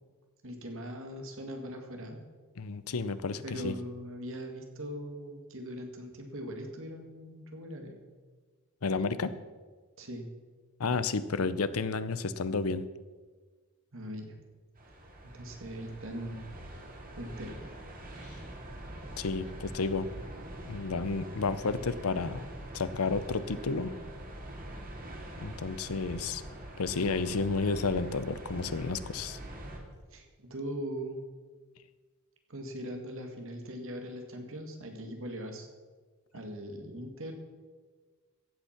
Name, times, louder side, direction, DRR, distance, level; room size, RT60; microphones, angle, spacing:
voice 1, 0.4-2.2 3.4-8.0 10.0-10.3 13.9-14.3 15.2-16.4 17.2-17.6 30.1-31.2 32.5-35.7 36.3-37.3, equal, 60° right, 4 dB, 2.1 m, -40 dB
voice 2, 2.6-3.8 8.8-9.3 10.8-12.8 19.2-20.1 20.7-22.5 22.7-23.9 25.4-26.4 26.8-29.4, left 4 dB, 75° left, 14 dB, 0.7 m, -31 dB
sound 1, 14.8-29.8, right 1 dB, 40° right, 2.1 m, -44 dB
15.0 x 8.2 x 5.9 m, 1.4 s
head